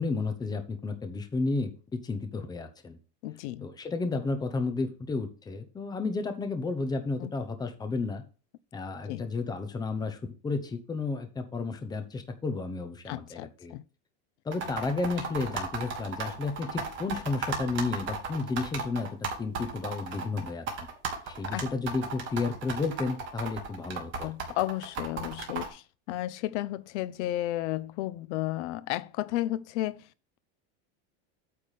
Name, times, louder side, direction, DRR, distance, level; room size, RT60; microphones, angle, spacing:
voice 1, 0.0-3.0 3.6-8.2 8.7-10.2 10.4-13.7 14.4-19.1 19.4-20.6 21.3-24.3, left 3 dB, 10° left, 0.8 m, -32 dB
voice 2, 3.2-3.7 7.2-7.3 9.1-9.3 13.1-13.8 21.5-21.6 24.2-30.1, left 15 dB, 80° left, 0.7 m, -33 dB
sound 1, 14.5-25.7, right 5 dB, 35° right, 1.8 m, -35 dB
8.7 x 3.6 x 6.5 m
supercardioid pair, 160°, 35 cm